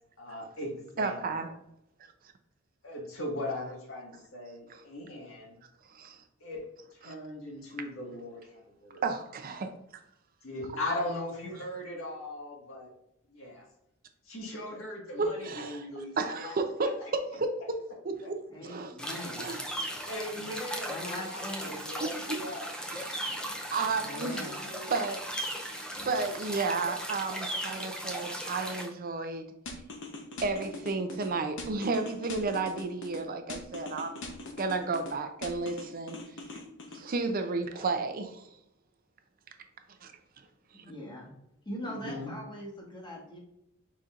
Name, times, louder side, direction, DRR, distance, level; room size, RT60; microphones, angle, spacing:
voice 1, 0.2-1.3 2.8-5.6 6.4-6.6 6.9-9.0 10.4-12.9 13.3-13.6 14.3-16.5 20.1-22.7 24.1-24.9 41.8-42.3, left 1 dB, 85° left, -2 dB, 1.6 m, -39 dB
voice 2, 1.0-1.5 4.7-4.8 5.9-6.2 7.0-7.1 9.0-9.7 15.2-15.9 16.2-18.4 18.6-18.9 19.4-19.6 22.0-22.4 22.9-23.4 23.7-24.6 24.9-29.5 30.4-34.2 34.6-36.2 36.9-38.5 40.0-40.1, right 3 dB, 45° right, 7 dB, 0.5 m, -32 dB
voice 3, 18.5-19.5 20.3-20.5 20.9-21.7 24.0-24.6 25.9-26.1 37.4-37.5 37.7-37.9 40.8-41.3 41.6-43.4, left 1 dB, 20° left, -2 dB, 1.3 m, -41 dB
sound 1, 19.0-28.9, equal, 5° left, 0.5 m, -37 dB
sound 2, 29.7-31.3 31.6-33.2 33.5-35.1 35.4-37.0, left 2 dB, 65° left, 0.8 m, -41 dB
5.0 x 4.2 x 2.4 m, 0.80 s
head